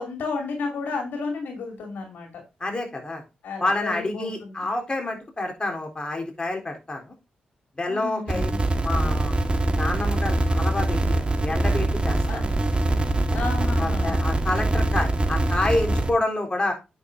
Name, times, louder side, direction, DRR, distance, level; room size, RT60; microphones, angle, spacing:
voice 1, 0.0-2.3 3.4-4.7 7.9-8.6 12.3-12.5 13.3-14.1, left 4 dB, 75° left, 3 dB, 2.6 m, -32 dB
voice 2, 2.6-3.2 3.6-7.1 7.8-8.5 8.8-9.4 9.7-12.4 13.3-13.4 13.8-16.7, left 2 dB, 30° left, 2 dB, 3.8 m, -28 dB
sound 1, 8.3-16.1, right 1 dB, 35° right, 1.7 m, -23 dB
9.0 x 6.1 x 3.8 m, 0.27 s
supercardioid pair, 50°, 3 cm